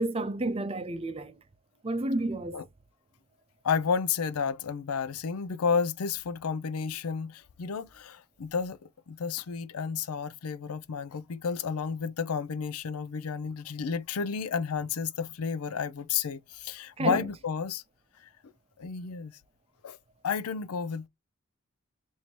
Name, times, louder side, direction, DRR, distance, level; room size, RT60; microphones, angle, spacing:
voice 1, 0.0-1.4 1.8-2.6 17.0-17.3, right 2 dB, 25° right, 0.5 m, -30 dB
voice 2, 3.6-17.8 18.8-19.3 19.8-20.0 20.2-21.1, left 6 dB, 90° left, 0.5 m, -31 dB
4.4 x 2.7 x 2.9 m
head